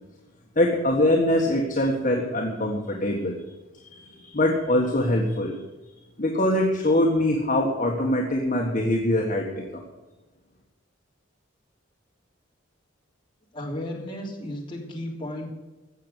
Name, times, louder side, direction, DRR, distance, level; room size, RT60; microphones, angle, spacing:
voice 1, 0.5-3.4 3.8-5.6 6.2-9.8, left 1 dB, 40° left, -1 dB, 1.5 m, -23 dB
voice 2, 13.5-15.5, left 1 dB, 25° left, -2 dB, 3.3 m, -34 dB
16.5 x 6.8 x 8.2 m, 1.1 s
head